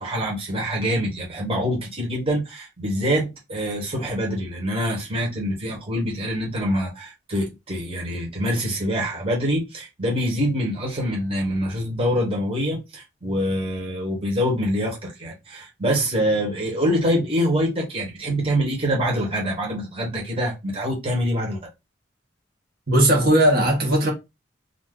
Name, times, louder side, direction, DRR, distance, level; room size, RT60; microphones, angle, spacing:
voice 1, 0.0-21.6, equal, 30° right, 1.1 m, -25 dB
voice 2, 22.9-24.1, right 1 dB, 60° right, 1.1 m, -17 dB
2.6 x 2.5 x 3.6 m
head